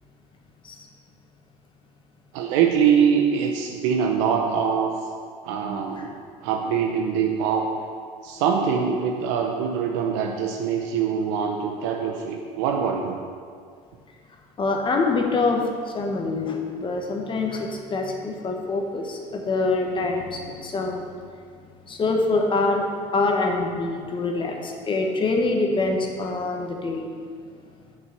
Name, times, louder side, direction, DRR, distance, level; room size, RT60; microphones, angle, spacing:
voice 1, 2.3-5.0 5.4-7.7 8.2-13.2, right 7 dB, 90° right, 2 dB, 0.7 m, -23 dB
voice 2, 14.6-21.1 21.9-27.1, left 3 dB, 35° left, 2 dB, 1.3 m, -25 dB
6.5 x 5.6 x 6.7 m, 2.1 s
supercardioid pair, 100°, 15 cm